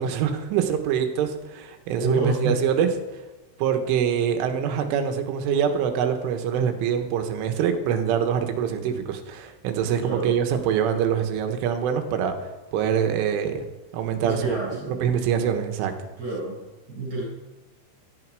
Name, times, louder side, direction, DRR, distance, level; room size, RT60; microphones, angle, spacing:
voice 1, 0.0-2.9 3.6-13.7 13.9-14.6 14.9-15.9, right 8 dB, 85° right, 6 dB, 3.8 m, -24 dB
voice 2, 2.0-2.6 10.0-10.3 14.2-15.0 16.2-16.6 16.9-17.2, right 2 dB, 20° right, -6 dB, 7.1 m, -28 dB
17.0 x 13.5 x 4.8 m, 1.1 s
omnidirectional pair, 5.6 m